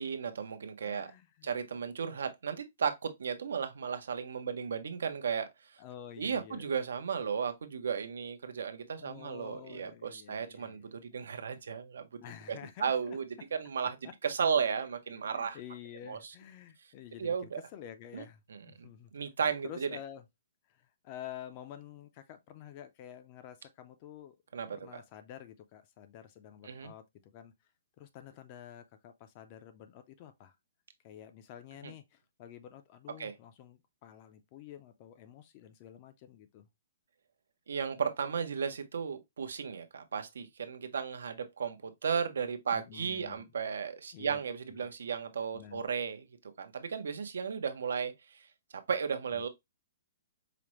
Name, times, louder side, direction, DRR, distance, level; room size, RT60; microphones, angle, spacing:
voice 1, 0.0-1.1 1.4-5.5 6.2-12.2 12.5-13.2 13.6-14.0 14.2-15.6 16.1-16.3 17.2-17.6 18.1-18.2 18.8-18.9 19.1-19.9 24.5-25.0 26.6-26.9 31.8-31.9 33.2-33.3 37.7-46.3 46.6-48.5 48.9-49.5, right 6 dB, 80° right, 0.7 m, -34 dB
voice 2, 0.8-1.5 5.8-6.7 9.0-10.9 12.2-13.2 14.0-14.1 15.3-19.1 19.6-20.2 20.7-24.4 24.7-27.5 28.0-30.6 31.0-36.7 42.7-43.5 44.1-44.4 44.7-44.9 45.5-45.8 49.3-49.5, left 10 dB, 25° left, 0.4 m, -49 dB
4.9 x 2.0 x 3.0 m
hypercardioid pair, 175°, 0 cm